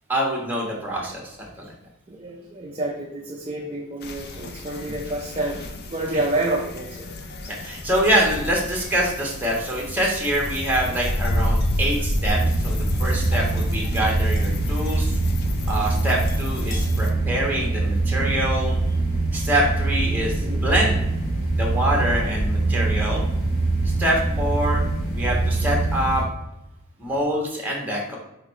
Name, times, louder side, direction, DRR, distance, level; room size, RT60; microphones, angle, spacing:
voice 1, 0.1-1.4 4.8-4.9 7.6-15.2 15.7-18.8 19.3-21.0 21.5-23.2 24.0-24.8 25.1-26.2 27.0-28.2, right 1 dB, 10° right, -2 dB, 1.5 m, -25 dB
voice 2, 2.1-5.7 5.9-7.1 20.4-20.6, right 2 dB, 25° right, -1 dB, 0.6 m, -28 dB
sound 1, 4.0-17.1, left 1 dB, 45° left, 0.6 m, -29 dB
sound 2, 12.3-26.2, right 2 dB, 80° left, 1.6 m, -24 dB
5.2 x 4.0 x 4.7 m, 0.88 s
head